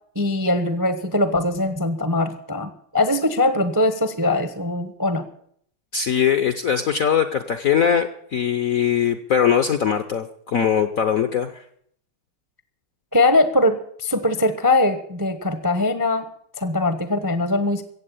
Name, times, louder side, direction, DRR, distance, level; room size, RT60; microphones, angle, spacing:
voice 1, 0.1-5.3 13.1-16.3 16.6-17.8, left 2 dB, 15° right, 10 dB, 0.6 m, -21 dB
voice 2, 5.9-11.6, left 8 dB, 60° left, 9 dB, 0.9 m, -21 dB
15.5 x 8.3 x 8.4 m, 0.64 s
omnidirectional pair, 2.3 m